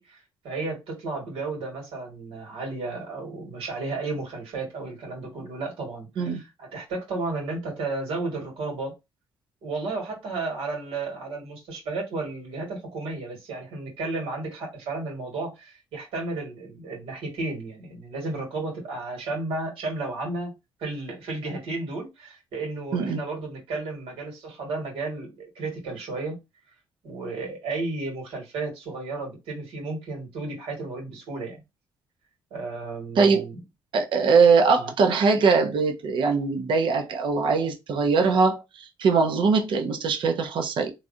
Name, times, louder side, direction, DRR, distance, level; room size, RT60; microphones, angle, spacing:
voice 1, 0.0-8.9 9.6-20.5 20.8-26.4 27.0-31.6 32.5-33.6 34.8-34.9, right 3 dB, 80° right, 1.9 m, -33 dB
voice 2, 33.9-40.9, right 4 dB, 65° right, 0.7 m, -21 dB
3.1 x 2.5 x 2.6 m
cardioid pair, 95°, 9 cm